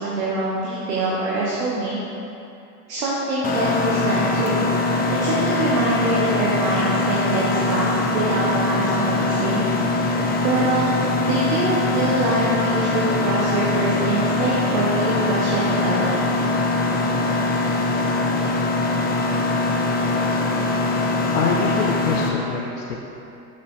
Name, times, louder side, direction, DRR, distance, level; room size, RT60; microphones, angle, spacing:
voice 1, 0.0-2.0 2.9-4.7 5.2-9.7 10.4-10.9 11.3-16.4, right 2 dB, 70° right, -6 dB, 1.3 m, -24 dB
Mechanisms, 3.4-22.3, left 2 dB, 20° left, 0.6 m, -22 dB
voice 2, 21.3-23.0, left 5 dB, 75° left, -1 dB, 0.8 m, -25 dB
6.4 x 6.0 x 3.7 m, 2.8 s
hypercardioid pair, 95°, 48 cm